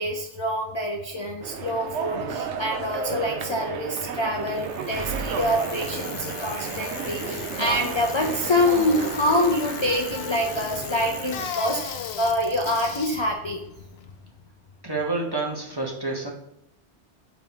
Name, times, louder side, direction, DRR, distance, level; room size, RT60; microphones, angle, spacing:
voice 1, 0.0-13.6, left 1 dB, 50° left, 3 dB, 0.3 m, -26 dB
sound 1, 1.4-11.5, right 6 dB, 80° right, 0.9 m, -33 dB
Bicycle, 4.4-14.5, left 7 dB, 65° left, 0.8 m, -37 dB
voice 2, 14.8-16.3, right 3 dB, 25° right, -1 dB, 0.8 m, -28 dB
4.2 x 4.1 x 5.5 m, 0.82 s
omnidirectional pair, 1.2 m